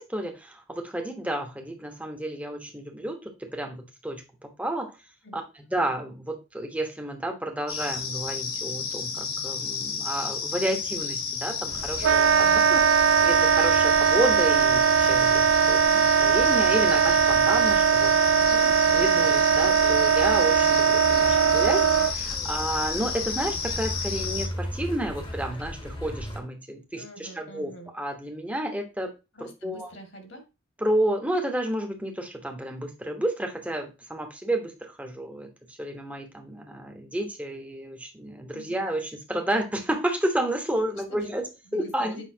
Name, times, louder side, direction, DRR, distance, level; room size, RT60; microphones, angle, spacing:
voice 1, 0.0-3.2 3.5-4.9 5.3-18.1 18.9-29.1 29.6-29.9 30.8-41.5 41.7-42.2, right 1 dB, 5° right, 3 dB, 1.1 m, -31 dB
sound 1, 7.7-24.5, left 5 dB, 90° left, 1.4 m, -32 dB
sound 2, 11.7-26.4, left 1 dB, 25° left, 1.3 m, -38 dB
Wind instrument woodwind instrument, 12.0-22.1, right 7 dB, 70° right, 0.4 m, -20 dB
voice 2, 12.3-12.6 18.5-18.8 27.0-27.9 29.3-30.4 38.5-38.8 41.1-41.3 41.7-42.3, equal, 60° left, 3 dB, 2.2 m, -44 dB
8.0 x 5.5 x 2.8 m, 0.27 s
head